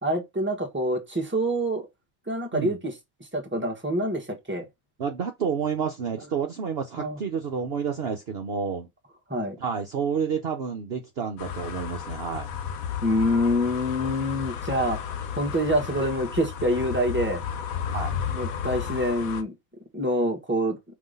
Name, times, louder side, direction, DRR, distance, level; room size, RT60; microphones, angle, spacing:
voice 1, 0.0-1.9 2.3-2.9 3.3-4.6 7.0-7.2 9.3-9.6 13.0-15.0 15.4-17.4 18.3-19.5 19.9-20.8, equal, 10° right, 1.4 m, -26 dB
voice 2, 5.0-8.9 9.6-12.5 17.9-18.1, right 6 dB, 50° right, 0.9 m, -29 dB
sound 1, 11.4-19.4, left 7 dB, 80° left, 1.3 m, -33 dB
5.9 x 3.2 x 5.3 m
omnidirectional pair, 1.4 m